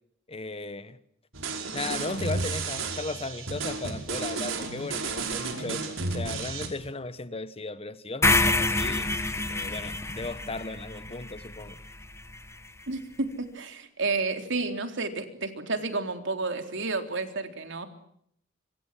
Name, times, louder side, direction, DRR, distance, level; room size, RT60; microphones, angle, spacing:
voice 1, 0.3-1.0 1.7-9.1 9.5-11.8, left 3 dB, 30° left, 1.3 m, -36 dB
sound 1, 1.3-6.7, right 3 dB, 85° right, 5.5 m, -32 dB
sound 2, 8.2-12.4, left 2 dB, 15° left, 1.5 m, -27 dB
voice 2, 12.9-17.9, right 3 dB, 65° right, 3.7 m, -31 dB
26.5 x 26.0 x 7.7 m
head